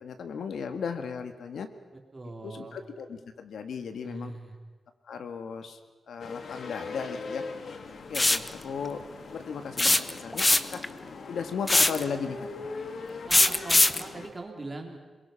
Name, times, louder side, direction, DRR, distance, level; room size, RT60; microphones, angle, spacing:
voice 1, 0.0-1.7 2.4-4.3 5.1-5.8 6.1-7.4 8.1-9.0 9.3-10.8 11.3-12.4, left 6 dB, 85° left, 7 dB, 1.9 m, -36 dB
voice 2, 2.1-2.8 4.0-4.6 13.2-15.0, right 2 dB, 25° right, 2 dB, 3.3 m, -41 dB
sound 1, 6.2-14.3, left 4 dB, 60° left, 1.9 m, -41 dB
sound 2, 8.1-8.5 9.8-10.9 11.7-12.0 13.3-14.0, left 2 dB, 15° left, 0.9 m, -21 dB
27.5 x 22.0 x 5.8 m, 1.3 s
wide cardioid pair, 135°, 0 cm